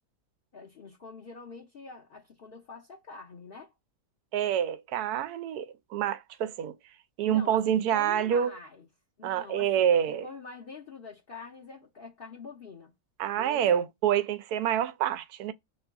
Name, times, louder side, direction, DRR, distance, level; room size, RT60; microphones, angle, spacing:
voice 1, 0.5-3.7 7.2-8.9 9.2-9.9 10.2-12.9 13.3-13.8, left 4 dB, 45° left, 0.8 m, -45 dB
voice 2, 4.3-5.7 5.9-6.7 7.2-8.5 9.2-10.2 13.2-15.5, right 9 dB, 80° right, 1.1 m, -27 dB
3.0 x 2.3 x 3.4 m
omnidirectional pair, 1.6 m